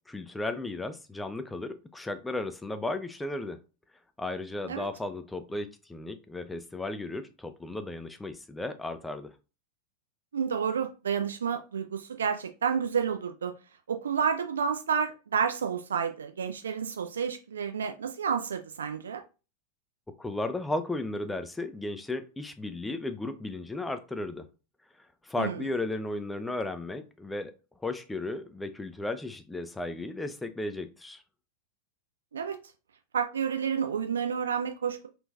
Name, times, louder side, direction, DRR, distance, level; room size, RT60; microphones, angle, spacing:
voice 1, 0.1-3.6 4.2-9.3 20.2-24.5 25.2-27.5 27.8-31.2, left 2 dB, 5° left, 0.4 m, -35 dB
voice 2, 10.3-13.5 13.9-19.2 25.4-25.6 32.3-32.6 33.1-35.1, right 7 dB, 70° right, 0.3 m, -30 dB
3.5 x 2.6 x 2.3 m
figure-of-eight pair, 90°, 0 cm